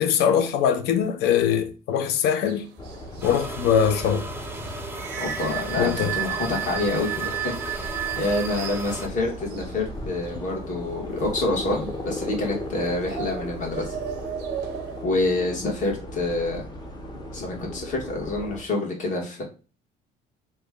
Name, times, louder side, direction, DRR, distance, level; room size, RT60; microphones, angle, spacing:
voice 1, 0.0-2.7 3.2-4.3 5.8-6.2, left 8 dB, 80° left, 0.5 m, -22 dB
sound 1, 2.4-15.0, right 12 dB, 80° right, 0.5 m, -35 dB
sound 2, 2.8-18.6, left 1 dB, 25° left, 0.7 m, -36 dB
sound 3, 3.2-9.1, right 2 dB, 15° right, 0.5 m, -36 dB
voice 2, 5.2-13.8 15.0-16.7 17.3-19.4, left 2 dB, 50° left, 1.4 m, -27 dB
3.1 x 2.2 x 3.5 m
cardioid pair, 110°, 17 cm